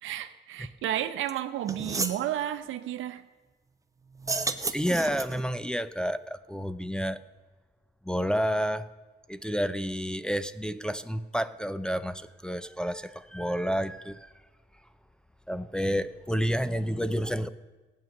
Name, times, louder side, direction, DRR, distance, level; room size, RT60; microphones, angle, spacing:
voice 1, 0.0-3.3, right 11 dB, 80° right, 10 dB, 0.9 m, -32 dB
sound 1, 1.3-1.4 1.7-2.2 4.2-5.5, right 3 dB, 15° right, 0.8 m, -32 dB
voice 2, 4.7-7.2 8.0-8.9 9.3-14.3 15.5-17.5, equal, 5° left, 10 dB, 0.5 m, -30 dB
15.5 x 9.2 x 6.6 m, 1.3 s
cardioid pair, 90°, 20 cm